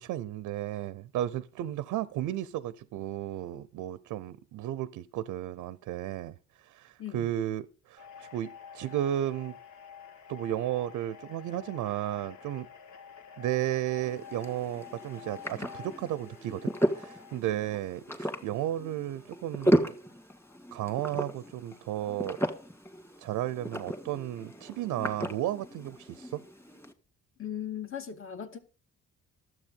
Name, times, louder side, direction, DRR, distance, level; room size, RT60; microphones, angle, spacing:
voice 1, 0.0-9.6 10.3-12.7 13.4-19.9 20.7-22.4 23.2-26.4, right 12 dB, 85° right, 0.6 m, -34 dB
voice 2, 7.0-7.3 27.4-28.6, left 9 dB, 45° left, 1.9 m, -38 dB
sound 1, 8.0-17.4, left 7 dB, 75° left, 1.4 m, -49 dB
sound 2, 14.0-26.9, equal, 10° left, 1.9 m, -34 dB
12.0 x 7.7 x 5.3 m
cardioid pair, 90°, 30 cm